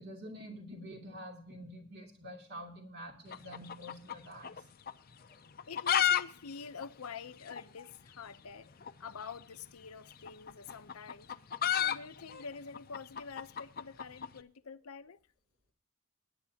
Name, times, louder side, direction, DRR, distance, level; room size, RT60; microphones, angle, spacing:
voice 1, 0.0-4.6 5.3-5.4, equal, 50° right, 2.8 m, -47 dB
sound 1, 3.3-4.6 4.9-5.0 5.5-6.2 6.5-6.6 6.8-6.9 7.5-7.6 8.8-9.0 10.1-14.3, left 10 dB, 45° left, 0.6 m, -31 dB
voice 2, 5.7-8.7 9.0-11.3 11.7-15.2, left 5 dB, 85° left, 0.7 m, -47 dB
19.5 x 9.8 x 2.8 m
head